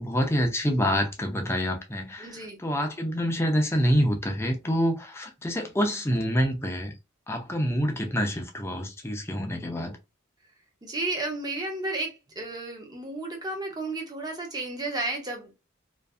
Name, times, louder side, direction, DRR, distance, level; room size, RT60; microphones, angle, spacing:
voice 1, 0.0-6.9 7.3-10.0, equal, 10° left, 0.5 m, -27 dB
voice 2, 2.2-2.6 10.8-15.5, right 2 dB, 20° right, 0.7 m, -32 dB
2.5 x 2.4 x 2.3 m
head